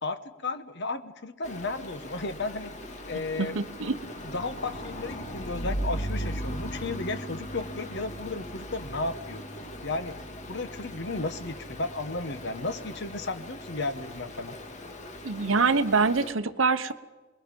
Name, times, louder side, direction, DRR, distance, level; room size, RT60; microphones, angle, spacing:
voice 1, 0.0-2.7 3.1-3.6 4.2-9.4 9.8-10.2 10.5-14.6, left 3 dB, 55° left, 10 dB, 1.2 m, -34 dB
Stream, 1.4-16.3, equal, 35° left, 2.1 m, -38 dB
voice 2, 3.4-3.9 15.2-16.9, right 4 dB, 70° right, 11 dB, 1.1 m, -24 dB
27.5 x 21.0 x 5.4 m, 1.2 s
head